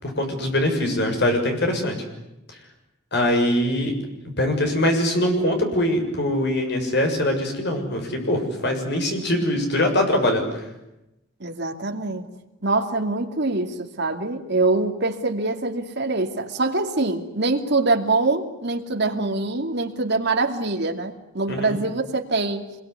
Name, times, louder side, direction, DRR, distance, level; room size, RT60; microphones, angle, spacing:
voice 1, 0.0-2.0 3.1-3.9 4.4-10.6 21.5-21.8, left 1 dB, 55° left, 4 dB, 6.7 m, -22 dB
voice 2, 11.4-12.2 12.6-22.6, right 3 dB, 55° right, 4 dB, 2.6 m, -24 dB
26.5 x 22.0 x 9.8 m, 0.91 s
head